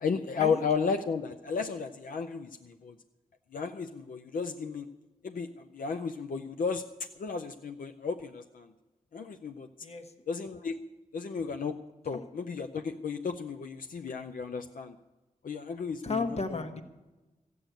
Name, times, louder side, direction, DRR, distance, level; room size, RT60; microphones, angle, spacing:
voice 1, 0.0-3.0 3.5-4.9 5.2-6.8 7.2-8.7 9.1-9.7 10.3-10.8 11.1-11.7 12.0-15.0 15.4-16.4, left 5 dB, 85° left, 7 dB, 0.6 m, -33 dB
voice 2, 9.8-10.1 12.1-12.2 16.0-16.8, left 3 dB, 50° left, 7 dB, 1.2 m, -33 dB
14.5 x 7.7 x 9.1 m, 1.1 s
wide cardioid pair, 80°, 14 cm